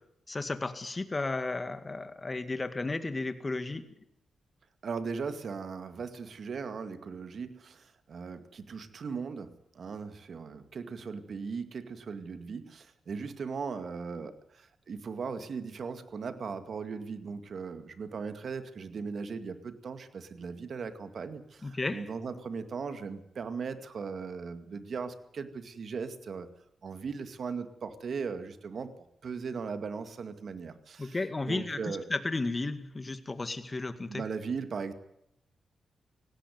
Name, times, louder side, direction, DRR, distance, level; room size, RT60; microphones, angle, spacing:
voice 1, 0.3-3.8 21.6-22.1 31.0-34.2, left 3 dB, 25° left, 10 dB, 2.1 m, -33 dB
voice 2, 4.8-26.5 26.8-31.2 31.5-32.1 34.1-34.9, right 5 dB, 60° right, 10 dB, 2.2 m, -38 dB
18.0 x 17.0 x 9.4 m, 0.76 s
cardioid pair, 80°, 0 cm